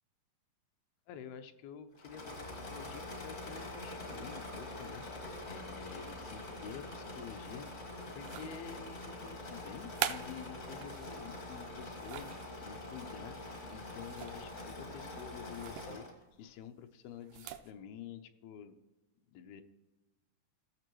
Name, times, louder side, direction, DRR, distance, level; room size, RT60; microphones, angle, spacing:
voice 1, 1.1-13.4 13.7-16.1 16.4-18.8 19.3-19.6, left 8 dB, 85° left, 8 dB, 2.6 m, -49 dB
Engine / Mechanisms, 1.9-16.2, left 2 dB, 60° left, 0.7 m, -45 dB
sound 1, 8.1-8.8 9.6-11.2 11.7-12.5 14.0-14.5 14.8-15.0 15.5-15.9 17.2-17.7, right 11 dB, 80° right, 2.0 m, -41 dB
17.0 x 6.8 x 3.1 m, 1.2 s
omnidirectional pair, 4.2 m